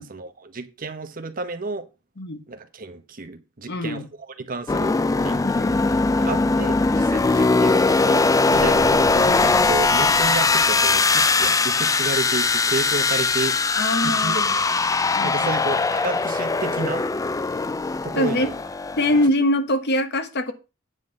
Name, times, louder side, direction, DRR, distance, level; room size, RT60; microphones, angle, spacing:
voice 1, 0.0-1.9 2.5-5.8 6.2-8.2 8.5-9.0 9.4-13.6 14.0-14.8 15.2-17.0 18.0-18.5, right 3 dB, 45° right, 1.1 m, -31 dB
voice 2, 3.7-4.0 5.4-5.5 6.3-6.5 13.7-14.6 15.1-15.5 18.2-18.5 19.0-20.5, left 1 dB, 55° left, 1.1 m, -23 dB
sound 1, 4.7-19.3, left 3 dB, 15° left, 0.3 m, -20 dB
sound 2, 8.5-11.3, right 2 dB, 70° right, 0.9 m, -34 dB
9.2 x 4.0 x 6.6 m
head